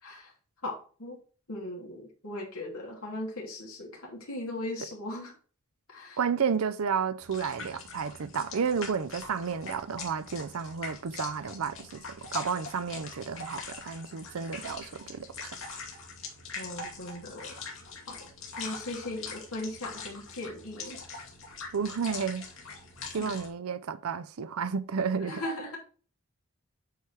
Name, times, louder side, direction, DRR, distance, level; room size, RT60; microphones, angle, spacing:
voice 1, 0.6-1.2 1.5-5.3 5.9-6.2 16.6-17.5 18.1-18.2 18.6-21.0 23.1-23.3 25.2-25.8, left 1 dB, 90° left, 3.0 m, -38 dB
voice 2, 6.2-15.5 21.7-22.4 23.1-25.4, right 6 dB, 75° right, 0.5 m, -32 dB
sound 1, 7.2-23.5, left 4 dB, 65° left, 2.5 m, -42 dB
9.1 x 4.7 x 3.4 m
head